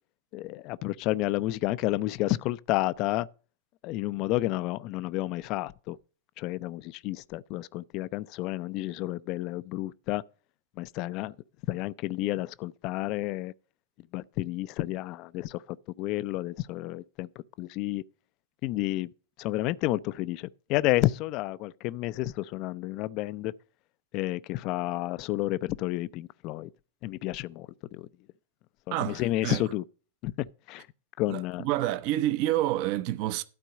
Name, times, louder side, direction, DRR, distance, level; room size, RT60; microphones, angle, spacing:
voice 1, 0.3-3.3 3.8-6.0 6.4-10.2 10.8-11.3 11.7-13.5 14.1-15.6 16.0-17.3 17.6-18.0 18.6-19.1 19.4-23.5 24.1-26.7 27.0-28.1 28.9-29.9 30.2-30.9 31.2-31.7, left 17 dB, 40° left, 0.4 m, -30 dB
voice 2, 28.9-29.6 31.3-33.4, right 14 dB, 45° right, 0.6 m, -28 dB
12.0 x 4.5 x 6.3 m
figure-of-eight pair, 90°, 0 cm